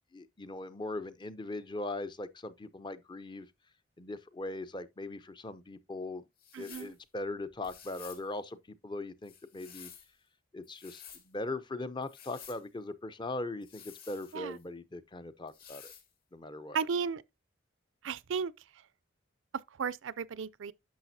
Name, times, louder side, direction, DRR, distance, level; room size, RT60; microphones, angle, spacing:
voice 1, 0.0-3.5 4.0-6.2 6.6-9.9 10.5-15.9 16.3-16.8, left 2 dB, 25° left, 0.6 m, -40 dB
sound 1, 6.4-7.0 7.6-8.3 9.2-10.1 10.6-11.3 12.0-12.6 13.6-14.6 15.5-16.1, left 9 dB, 50° left, 2.2 m, -52 dB
voice 2, 6.5-6.9 14.3-14.6 16.7-17.2 18.0-18.5 19.8-20.7, right 6 dB, 75° right, 0.4 m, -34 dB
10.5 x 6.4 x 2.7 m
head